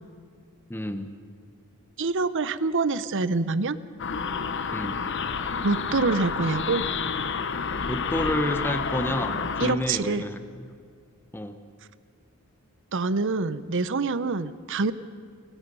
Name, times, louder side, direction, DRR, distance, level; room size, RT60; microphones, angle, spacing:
voice 1, 0.7-1.1 4.7-5.0 7.9-10.4 11.3-11.6, left 1 dB, 10° left, 8 dB, 0.9 m, -29 dB
voice 2, 2.0-3.8 5.6-6.8 9.6-10.2 12.9-14.9, right 3 dB, 60° right, 15 dB, 0.7 m, -26 dB
sound 1, 4.0-9.7, left 5 dB, 55° left, 1.0 m, -29 dB
29.0 x 17.0 x 5.5 m, 2.1 s
head